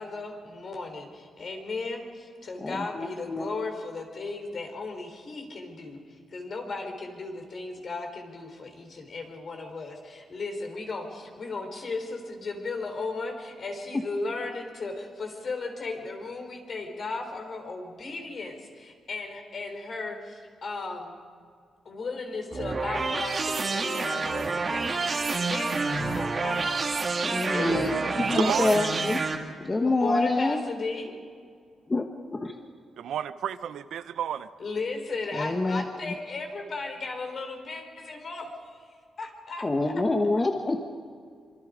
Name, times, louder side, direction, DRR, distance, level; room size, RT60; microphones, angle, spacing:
voice 1, 0.0-21.2 21.8-26.7 27.5-28.4 29.8-31.1 34.6-38.8 39.2-39.9, left 3 dB, 45° left, 4 dB, 4.1 m, -36 dB
voice 2, 2.6-3.5 27.2-29.2 29.6-30.6 31.9-32.0 32.3-32.5 35.3-35.8 39.6-40.8, left 2 dB, 25° left, 4 dB, 1.3 m, -26 dB
sound 1, 22.5-29.3, right 3 dB, 35° right, 2.1 m, -28 dB
voice 3, 27.6-28.9 33.0-34.5, right 9 dB, 85° right, 12 dB, 0.8 m, -32 dB
25.5 x 25.5 x 5.2 m, 2.2 s
cardioid pair, 130°, 0 cm